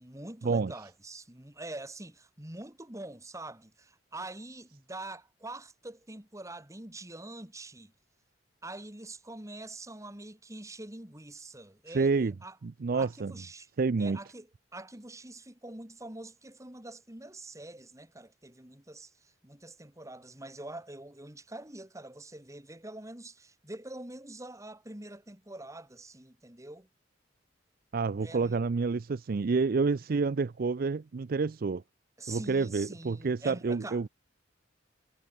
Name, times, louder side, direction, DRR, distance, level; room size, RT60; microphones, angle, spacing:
voice 1, 0.0-7.9 8.6-12.6 12.9-13.7 14.0-14.5 14.7-26.9 28.2-28.6 32.2-34.0, right 2 dB, 15° right, 2.5 m, -45 dB
voice 2, 11.9-12.3 12.6-13.3 13.8-14.2 27.9-31.8 32.3-34.1, right 4 dB, 50° right, 0.4 m, -28 dB
head